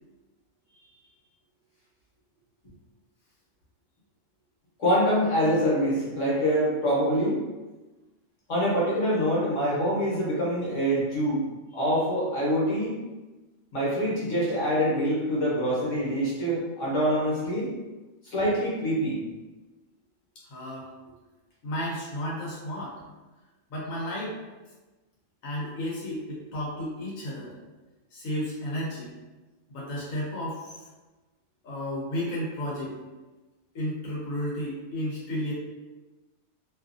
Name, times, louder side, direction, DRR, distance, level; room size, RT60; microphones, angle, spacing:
voice 1, 4.8-7.4 8.5-11.4 11.7-13.0 13.7-17.7 18.3-19.2, equal, 70° left, -6 dB, 1.3 m, -25 dB
voice 2, 20.5-20.9 21.6-23.0 23.7-24.4 25.4-27.5 28.1-29.1 29.7-30.8 31.6-32.9 33.7-35.5, equal, 90° left, -4 dB, 1.3 m, -32 dB
2.8 x 2.4 x 2.5 m, 1.2 s
omnidirectional pair, 1.3 m